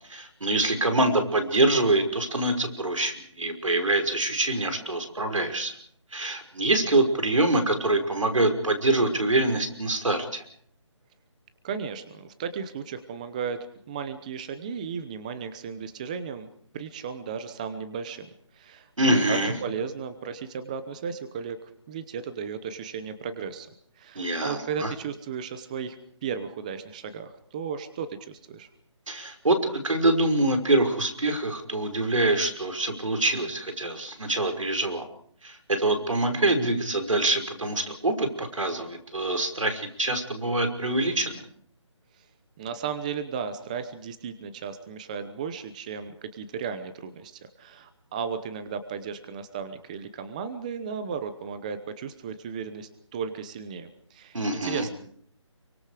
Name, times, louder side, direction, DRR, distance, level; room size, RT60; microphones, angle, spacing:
voice 1, 0.1-5.7 6.1-10.4 19.0-19.5 24.2-24.9 29.1-35.1 35.4-41.4 54.3-54.9, right 2 dB, 90° right, 6 dB, 5.7 m, -25 dB
voice 2, 11.6-21.6 21.9-23.7 24.0-26.0 26.2-28.7 42.2-42.3 42.6-54.9, right 6 dB, 15° right, 10 dB, 0.9 m, -35 dB
29.5 x 24.0 x 5.0 m, 0.62 s
figure-of-eight pair, 170°, 16 cm